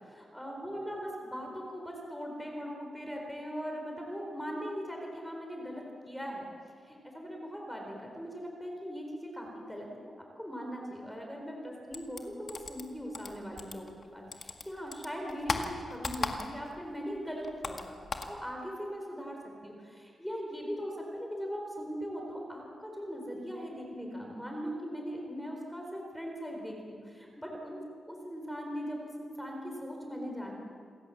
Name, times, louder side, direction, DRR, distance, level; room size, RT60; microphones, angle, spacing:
voice 1, 0.3-6.5 6.8-10.1 10.4-18.0 18.3-19.4 19.6-27.8 28.1-30.5, equal, 5° left, 1 dB, 4.3 m, -40 dB
sound 1, 11.9-14.1 14.3-16.8 17.1-18.4, left 3 dB, 45° left, 2.0 m, -37 dB
28.0 x 16.0 x 7.2 m, 2.3 s
cardioid pair, 95°, 0 cm